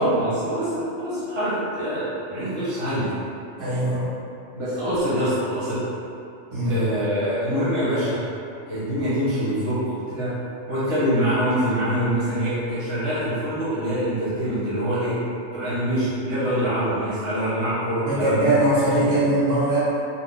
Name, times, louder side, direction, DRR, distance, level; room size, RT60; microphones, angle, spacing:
voice 1, 0.0-3.1 4.5-5.8 6.6-8.2 8.7-10.3 10.7-15.2 15.5-18.5, equal, 60° right, -11 dB, 1.3 m, -24 dB
voice 2, 3.6-4.1 6.5-6.8 18.0-19.8, right 1 dB, 75° right, -11 dB, 1.4 m, -21 dB
4.2 x 2.0 x 3.8 m, 2.7 s
omnidirectional pair, 1.2 m